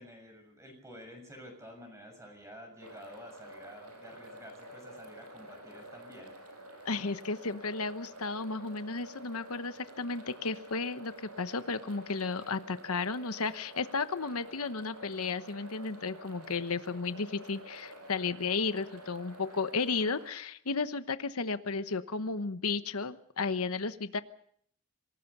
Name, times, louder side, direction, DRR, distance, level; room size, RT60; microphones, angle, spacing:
voice 1, 0.0-6.3, equal, 15° right, 4 dB, 6.5 m, -50 dB
sound 1, 2.8-20.3, right 1 dB, 90° right, 7.1 m, -49 dB
voice 2, 6.8-24.2, left 4 dB, 75° left, 11 dB, 1.1 m, -33 dB
26.5 x 18.5 x 6.8 m, 0.65 s
head